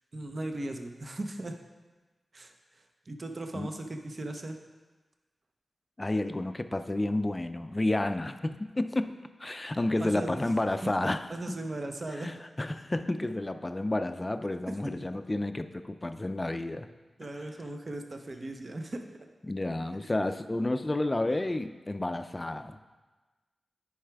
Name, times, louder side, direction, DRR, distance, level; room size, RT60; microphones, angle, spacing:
voice 1, 0.1-1.6 2.3-2.5 3.1-4.6 10.0-10.3 10.8-10.9 11.3-12.3 14.7-14.8 17.2-19.1, right 2 dB, 45° right, 4 dB, 0.7 m, -37 dB
voice 2, 6.0-9.1 9.4-11.6 12.1-16.9 19.4-22.8, left 2 dB, 25° left, 10 dB, 0.4 m, -31 dB
9.9 x 4.8 x 3.4 m, 1.3 s
cardioid pair, 55°, 0 cm